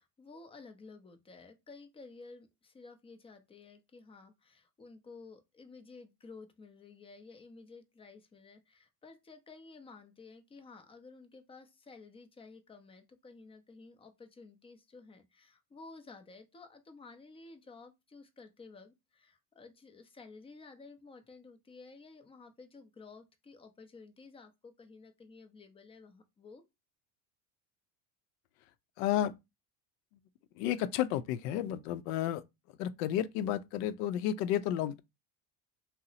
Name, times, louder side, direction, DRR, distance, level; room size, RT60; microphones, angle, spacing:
voice 1, 0.0-26.6, left 4 dB, 15° left, 0.4 m, -53 dB
voice 2, 29.0-29.3 30.6-32.4 32.8-35.0, left 11 dB, 75° left, 0.5 m, -32 dB
2.8 x 2.0 x 3.9 m
supercardioid pair, 100°, 48 cm